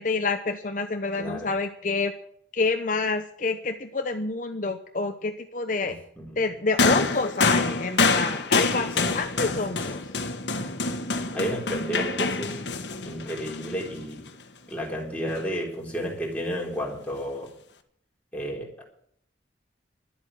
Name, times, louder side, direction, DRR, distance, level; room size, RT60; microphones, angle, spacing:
voice 1, 0.0-2.1 2.5-6.0 6.4-10.0, left 3 dB, 45° left, 6 dB, 0.9 m, -28 dB
voice 2, 1.2-1.5 5.8-6.4 8.8-9.2 9.7-9.8 11.3-12.6 13.0-14.2 14.7-17.5 18.3-18.8, equal, 10° left, -2 dB, 4.0 m, -32 dB
sound 1, 6.8-14.3 15.3-15.4, left 3 dB, 75° left, 1.5 m, -26 dB
12.0 x 8.4 x 9.3 m, 0.65 s
head